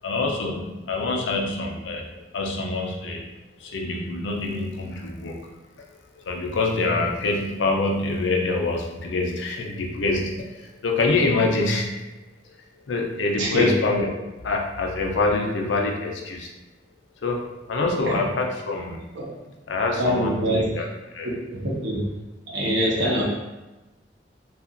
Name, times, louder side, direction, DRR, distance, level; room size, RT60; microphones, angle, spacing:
voice 1, 0.0-3.3 3.6-5.9 6.1-12.1 12.4-14.1 14.4-16.5 17.2-19.0 19.7-20.9 21.1-21.3 22.8-23.2, left 3 dB, 85° left, 1 dB, 0.5 m, -26 dB
voice 2, 13.4-13.7 18.0-18.2 19.2-19.3 20.0-20.7 21.5-22.0 22.5-23.2, equal, 90° right, -3 dB, 0.8 m, -24 dB
2.8 x 2.4 x 2.5 m, 1.1 s
head